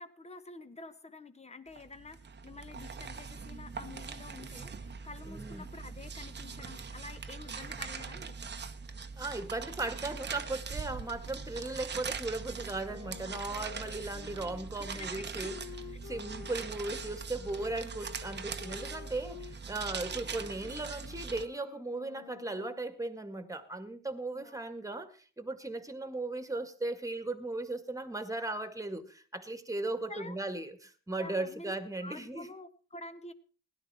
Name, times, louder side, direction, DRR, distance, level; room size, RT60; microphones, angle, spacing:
voice 1, 0.0-8.4 14.2-14.3 14.8-15.5 24.3-24.6 30.1-30.4 31.2-31.7 32.0-33.3, left 3 dB, 20° left, 1.5 m, -48 dB
sound 1, 1.7-21.5, right 5 dB, 35° right, 1.2 m, -42 dB
voice 2, 5.3-5.7 9.2-15.6 16.0-32.5, right 2 dB, 10° right, 1.9 m, -37 dB
sound 2, 12.9-19.6 20.0-23.0, left 11 dB, 85° left, 1.1 m, -51 dB
17.0 x 11.5 x 4.3 m
cardioid pair, 90°, 30 cm